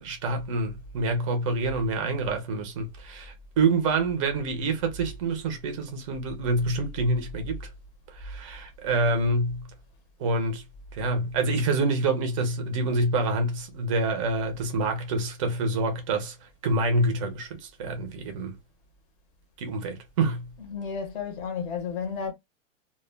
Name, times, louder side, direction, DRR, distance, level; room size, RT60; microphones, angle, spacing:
voice 1, 0.0-7.6 8.1-9.6 10.2-10.6 10.9-16.4 16.6-18.5 19.6-20.5, right 2 dB, 25° right, 0.4 m, -27 dB
voice 2, 20.7-22.3, left 6 dB, 40° left, 0.7 m, -32 dB
2.2 x 2.0 x 3.2 m
supercardioid pair, 155°, 41 cm